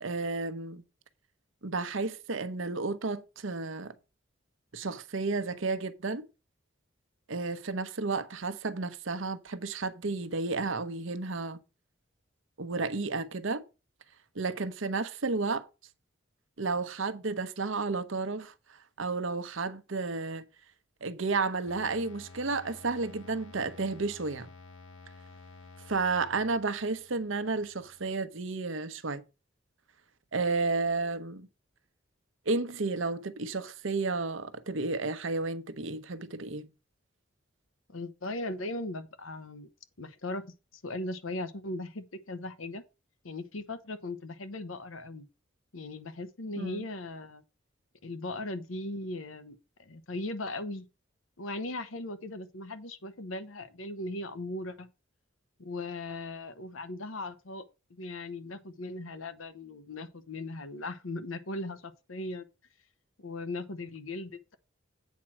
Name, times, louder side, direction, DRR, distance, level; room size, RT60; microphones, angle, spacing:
voice 1, 0.0-0.8 1.6-3.9 4.7-6.2 7.3-11.6 12.6-13.6 14.4-15.6 16.6-18.5 19.0-20.4 21.0-24.5 25.9-29.2 30.3-31.5 32.5-36.7 46.6-46.8, right 3 dB, 80° right, 0.9 m, -32 dB
sound 1, 21.7-28.1, left 3 dB, 75° left, 2.2 m, -52 dB
voice 2, 37.9-39.7 40.0-40.4 40.8-42.8 43.2-45.3 45.7-47.4 48.0-50.8 51.4-54.9 55.6-57.6 57.9-62.4 63.2-64.6, left 2 dB, 90° left, 1.0 m, -38 dB
8.3 x 4.4 x 6.1 m
head